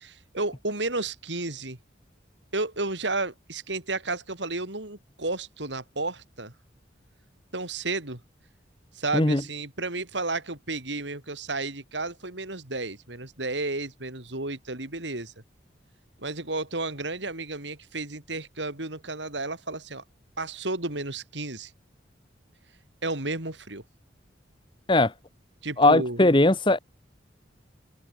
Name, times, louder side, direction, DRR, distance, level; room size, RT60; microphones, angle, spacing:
voice 1, 0.0-1.8 2.5-6.5 7.5-8.2 8.9-15.4 16.2-20.0 20.4-21.7 23.0-23.8 25.6-26.2, right 2 dB, 75° right, 4.4 m, -32 dB
voice 2, 25.8-26.8, left 2 dB, 25° left, 1.4 m, -19 dB
head